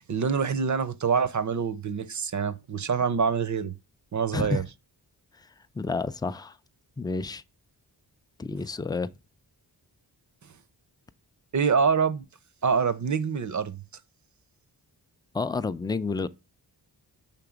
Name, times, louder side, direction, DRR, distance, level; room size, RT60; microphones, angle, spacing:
voice 1, 0.1-3.7 4.1-4.6 11.5-12.3 12.6-13.8, right 6 dB, 40° right, 0.6 m, -25 dB
voice 2, 5.8-6.5 7.0-7.4 8.4-9.1 15.3-16.3, left 3 dB, 10° left, 0.3 m, -29 dB
5.9 x 3.3 x 5.0 m
cardioid pair, 50°, 46 cm